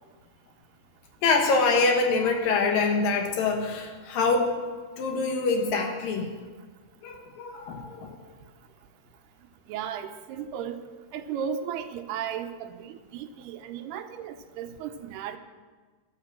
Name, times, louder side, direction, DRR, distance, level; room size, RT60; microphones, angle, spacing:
voice 1, 1.2-4.5 5.0-6.3 7.0-8.2, left 4 dB, 65° left, 4 dB, 2.9 m, -25 dB
voice 2, 9.7-10.8 11.1-15.4, right 8 dB, 80° right, 7 dB, 2.8 m, -35 dB
13.5 x 12.0 x 7.5 m, 1.4 s
omnidirectional pair, 4.7 m